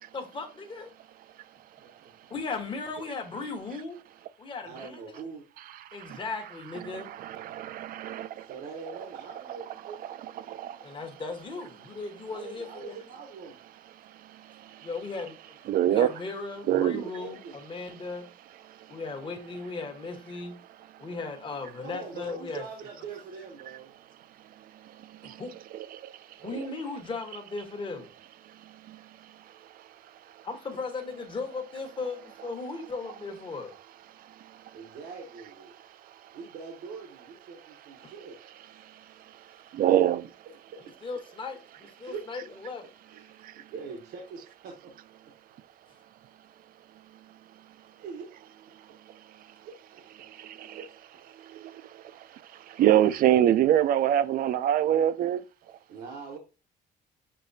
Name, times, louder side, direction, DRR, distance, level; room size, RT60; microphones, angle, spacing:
voice 1, 0.1-0.9 2.3-4.0 4.4-5.2 5.9-7.1 10.8-12.9 14.8-15.3 15.8-18.2 18.9-20.5 21.0-22.6 25.4-25.5 26.4-28.1 30.4-33.7 41.0-42.8, left 4 dB, 30° left, 1.1 m, -37 dB
voice 2, 4.6-5.4 8.4-10.3 12.2-13.6 16.7-17.6 21.8-23.9 34.7-35.7 36.3-38.4 38.7-38.8 40.0-40.1 40.7-40.8 41.8-42.2 42.8-44.9 45.2-45.3 48.0-48.3 49.6-50.0 50.6-50.9 51.1-51.7 55.9-56.4, right 5 dB, 75° right, 0.9 m, -43 dB
voice 3, 6.9-8.5 10.5-10.8 14.5-14.9 15.7-16.1 16.7-17.0 25.7-26.1 26.4-26.7 28.9-29.0 39.7-40.2 43.4-43.5 50.2-50.8 51.4-52.2 52.7-55.4, right 11 dB, 60° right, 0.4 m, -25 dB
6.6 x 2.9 x 2.6 m
cardioid pair, 110°, 17 cm